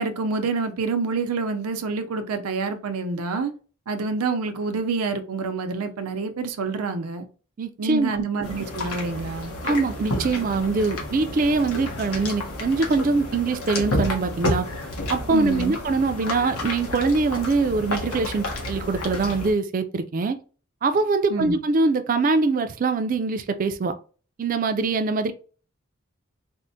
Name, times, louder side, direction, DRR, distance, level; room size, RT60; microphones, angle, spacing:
voice 1, 0.0-3.5 3.9-7.3 7.8-9.5 15.3-15.8 21.3-21.6, right 4 dB, 90° right, 0.5 m, -27 dB
voice 2, 7.6-8.2 9.6-14.7 15.1-20.4 20.8-24.0 24.4-25.3, right 3 dB, 40° right, 0.3 m, -23 dB
sound 1, 8.4-19.5, left 1 dB, 90° left, 1.0 m, -30 dB
4.4 x 2.1 x 2.6 m
head